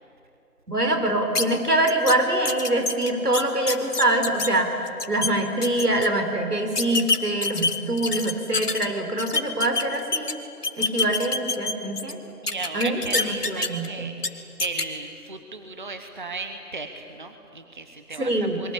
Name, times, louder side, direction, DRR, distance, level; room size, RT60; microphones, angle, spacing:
voice 1, 0.7-10.4 10.8-12.2 12.7-13.9 18.2-18.6, right 1 dB, 75° right, 5 dB, 4.6 m, -24 dB
sound 1, 1.3-1.4 1.9-2.1 2.4-4.5 4.9-5.3 5.6-6.1 6.7-8.8 9.2-10.3 10.6-12.1 12.5-13.9 14.2-14.3 14.6-14.8, left 3 dB, 75° left, 2.3 m, -25 dB
voice 2, 12.4-18.7, right 3 dB, 30° right, 6 dB, 1.1 m, -35 dB
27.5 x 22.5 x 8.5 m, 3.0 s
figure-of-eight pair, 160°, 47 cm